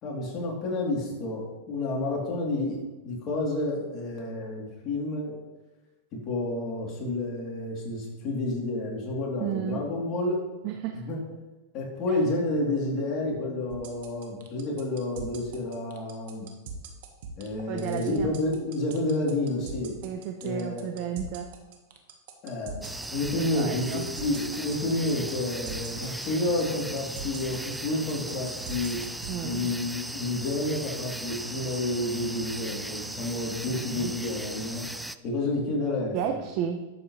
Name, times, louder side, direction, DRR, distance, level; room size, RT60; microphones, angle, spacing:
voice 1, 0.0-5.4 6.1-10.4 10.9-11.2 11.7-16.5 17.4-20.0 20.4-20.9 22.4-22.9 23.1-34.9 35.2-36.4, left 2 dB, 35° left, -3 dB, 3.5 m, -30 dB
voice 2, 9.4-9.8 10.6-11.0 17.7-18.3 20.0-21.5 23.4-24.1 29.3-29.7 33.7-34.1 36.1-36.9, right 9 dB, 45° right, 5 dB, 0.8 m, -32 dB
sound 1, 13.7-29.4, right 6 dB, 65° right, 1.6 m, -41 dB
sound 2, 22.8-35.2, right 1 dB, 5° right, 0.4 m, -38 dB
11.5 x 8.3 x 3.4 m, 1.2 s
supercardioid pair, 135°, 0 cm